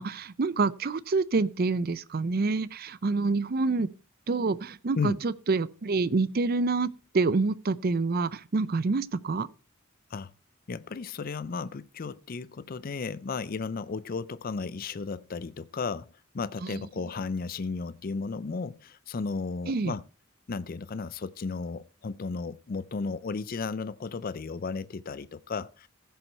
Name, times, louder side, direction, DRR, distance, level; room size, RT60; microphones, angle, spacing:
voice 1, 0.0-3.9 4.3-9.5 16.6-16.8 19.7-19.9, right 3 dB, 45° right, 0.5 m, -27 dB
voice 2, 10.7-16.1 16.3-20.0 20.5-25.9, left 4 dB, 45° left, 0.4 m, -34 dB
15.5 x 6.9 x 4.4 m
head